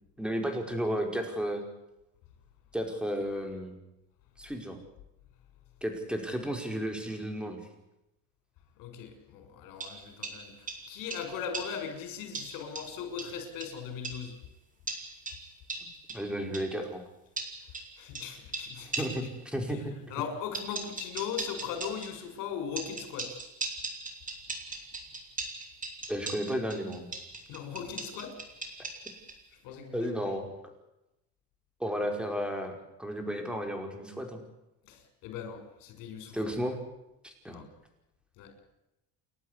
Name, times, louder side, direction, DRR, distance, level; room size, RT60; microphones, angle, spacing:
voice 1, 0.2-1.6 2.7-3.8 4.4-4.8 5.8-7.6 15.8-17.0 18.8-19.2 19.5-19.9 26.1-27.1 29.9-30.4 31.8-34.4 36.3-36.8 37.2-37.6, equal, 5° right, 4 dB, 5.2 m, -33 dB
voice 2, 8.8-14.4 18.0-19.3 19.7-19.8 20.1-23.4 27.5-28.4 29.5-30.3 34.8-36.5 37.5-37.7 38.4-38.5, left 7 dB, 85° left, 6 dB, 6.3 m, -39 dB
sound 1, 9.8-11.9 12.3-14.4 14.9-16.8 17.4-19.4 20.5-22.2 22.8-29.4, right 3 dB, 25° right, 4.5 m, -40 dB
29.5 x 12.5 x 9.9 m, 0.91 s
cardioid pair, 135°, 32 cm